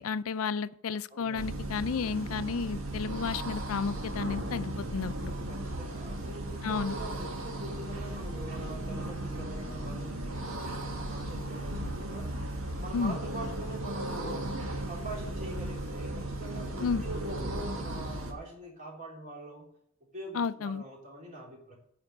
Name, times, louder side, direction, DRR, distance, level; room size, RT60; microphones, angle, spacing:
voice 1, 0.0-5.3 6.6-7.0 12.9-13.2 16.8-17.0 20.3-20.8, left 5 dB, 90° left, 0.5 m, -32 dB
voice 2, 1.1-1.6 5.5-12.3 12.8-14.6 14.8-19.7 20.1-21.8, right 1 dB, 40° right, 3.6 m, -44 dB
sound 1, 1.3-18.3, right 1 dB, 80° right, 1.8 m, -36 dB
9.7 x 5.1 x 7.8 m
head